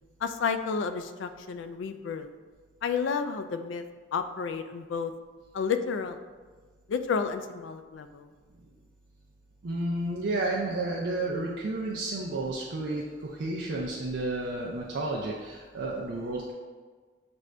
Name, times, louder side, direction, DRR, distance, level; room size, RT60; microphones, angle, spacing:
voice 1, 0.2-2.3 2.8-3.8 4.1-5.1 5.5-6.2 6.9-8.3, left 5 dB, 85° left, 9 dB, 0.3 m, -31 dB
voice 2, 9.6-16.5, right 2 dB, 70° right, -4 dB, 0.5 m, -31 dB
6.1 x 2.5 x 3.3 m, 1.4 s
head